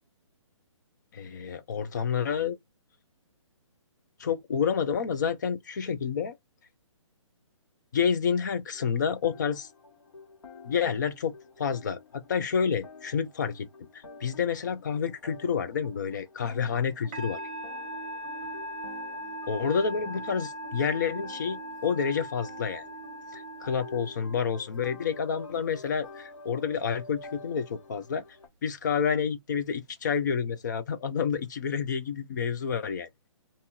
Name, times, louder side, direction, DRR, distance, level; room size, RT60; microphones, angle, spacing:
voice 1, 1.1-2.6 4.2-6.3 7.9-9.7 10.6-13.7 13.9-17.4 19.5-22.9 23.3-28.2 28.6-33.3, left 6 dB, 35° left, 0.6 m, -29 dB
sound 1, 8.7-28.5, left 3 dB, 70° left, 1.6 m, -49 dB
Musical instrument, 17.1-24.7, right 1 dB, 20° right, 0.6 m, -39 dB
2.8 x 2.6 x 3.8 m
hypercardioid pair, 170°, 17 cm